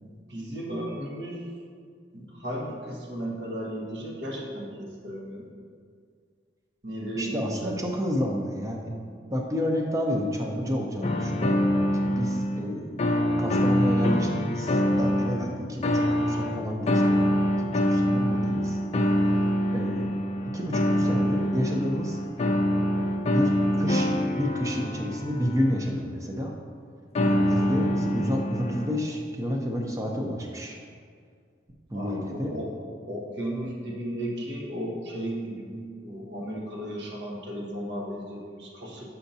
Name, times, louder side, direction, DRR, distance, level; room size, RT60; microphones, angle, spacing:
voice 1, 0.0-1.5 2.1-5.5 6.8-7.8 31.9-32.7 33.1-39.0, right 1 dB, 80° right, -3 dB, 1.3 m, -35 dB
voice 2, 7.2-9.0 9.3-11.6 12.0-13.0 13.4-18.8 19.7-20.1 20.5-22.2 22.9-26.5 27.2-30.8 31.9-32.5, equal, 20° right, 1 dB, 0.6 m, -30 dB
sound 1, 11.0-12.7 13.0-15.4 15.8-25.8 27.1-28.9, equal, 35° left, 0.4 m, -25 dB
7.0 x 5.6 x 2.7 m, 2.1 s
head